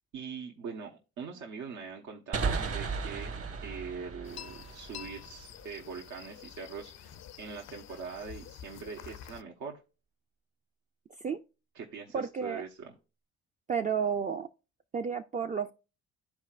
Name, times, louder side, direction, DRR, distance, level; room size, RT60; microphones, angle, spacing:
voice 1, 0.1-3.3 3.6-9.8 11.7-12.9, right 5 dB, 80° right, 1.2 m, -42 dB
sound 1, 2.3-5.8, right 4 dB, 50° right, 1.3 m, -35 dB
sound 2, 4.2-9.4, left 10 dB, 60° left, 0.5 m, -48 dB
voice 2, 12.1-12.6 13.7-14.5 14.9-15.7, right 6 dB, 25° right, 0.4 m, -31 dB
13.0 x 4.6 x 2.4 m
cardioid pair, 90°, 30 cm